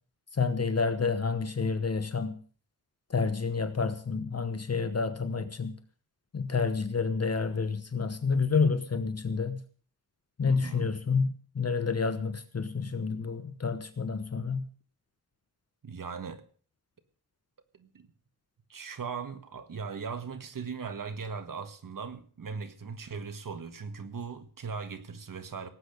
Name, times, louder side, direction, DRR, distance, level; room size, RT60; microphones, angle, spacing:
voice 1, 0.4-2.4 3.1-5.8 6.3-9.6 10.4-11.3 11.5-14.6, left 5 dB, 40° left, 11 dB, 1.1 m, -29 dB
voice 2, 10.4-10.9 15.8-16.4 17.7-18.1 18.7-25.7, right 5 dB, 60° right, 9 dB, 1.7 m, -39 dB
18.0 x 8.8 x 6.6 m, 0.44 s
wide cardioid pair, 110°, 37 cm